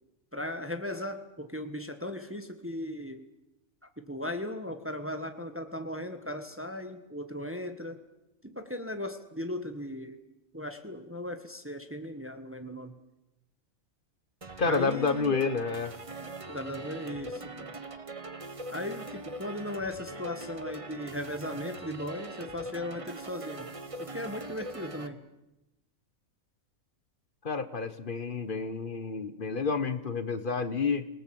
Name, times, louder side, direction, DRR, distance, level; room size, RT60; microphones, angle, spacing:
voice 1, 0.3-3.2 4.0-8.0 8.4-10.2 10.5-13.0 14.6-15.3 16.2-17.8 18.7-23.7 24.0-25.2, left 1 dB, 10° right, 8 dB, 1.4 m, -37 dB
sound 1, 14.4-25.1, right 2 dB, 25° right, 1.2 m, -42 dB
voice 2, 14.6-15.9 27.4-31.1, left 4 dB, 40° left, 13 dB, 1.3 m, -29 dB
27.0 x 19.0 x 7.7 m, 0.92 s
omnidirectional pair, 1.5 m